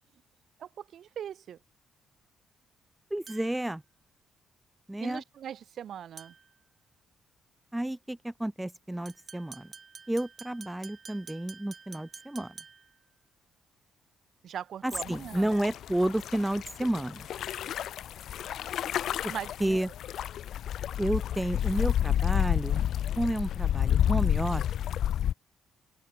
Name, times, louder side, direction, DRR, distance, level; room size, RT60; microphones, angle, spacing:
voice 1, 0.6-1.6 5.0-6.3 14.4-15.6 19.3-19.9, right 9 dB, 65° right, 0.9 m, -40 dB
voice 2, 3.1-3.8 4.9-5.2 7.7-9.7 10.1-12.5 14.8-17.3 19.2-19.3 19.6-19.9 21.0-22.8 23.2-24.6, right 1 dB, 10° right, 0.4 m, -31 dB
sound 1, 3.3-3.7 6.2-6.6 9.1-13.0, right 5 dB, 40° right, 2.1 m, -49 dB
sound 2, 14.9-25.3, left 10 dB, 70° left, 0.4 m, -30 dB
open air
cardioid pair, 90°, 0 cm